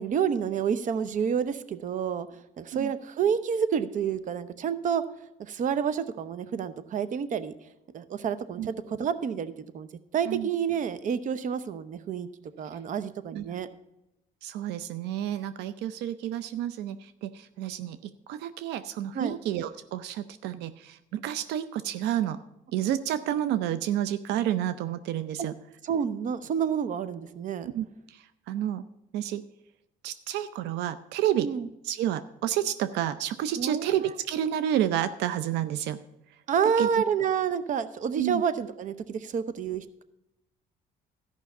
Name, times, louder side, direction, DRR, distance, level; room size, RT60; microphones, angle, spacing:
voice 1, 0.0-2.3 2.6-5.0 5.4-7.5 7.9-9.9 10.1-12.3 12.6-13.7 19.1-19.4 25.4-25.5 25.8-27.7 31.4-31.7 33.6-34.2 36.5-40.0, right 7 dB, 50° right, 13 dB, 0.8 m, -29 dB
voice 2, 14.4-22.4 22.7-25.5 27.7-28.8 29.1-29.4 30.0-31.5 31.8-36.0 36.8-37.0 38.1-38.4, right 11 dB, 85° right, 13 dB, 0.5 m, -30 dB
13.5 x 5.7 x 6.9 m, 0.89 s
cardioid pair, 110°, 17 cm